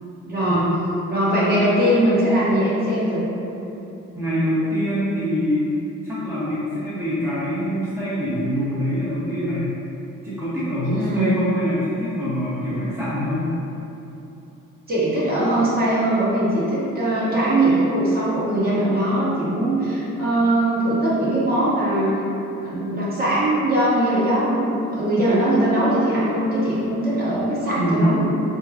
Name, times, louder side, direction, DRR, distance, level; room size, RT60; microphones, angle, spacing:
voice 1, 0.2-0.7 1.1-3.3 10.8-11.4 14.9-22.1 22.6-28.2, right 1 dB, 30° right, -10 dB, 1.2 m, -21 dB
voice 2, 4.1-5.7 6.0-9.7 10.2-13.5 27.7-28.2, equal, 10° right, -12 dB, 0.9 m, -24 dB
4.4 x 2.2 x 2.5 m, 3.0 s
cardioid pair, 90°, 30 cm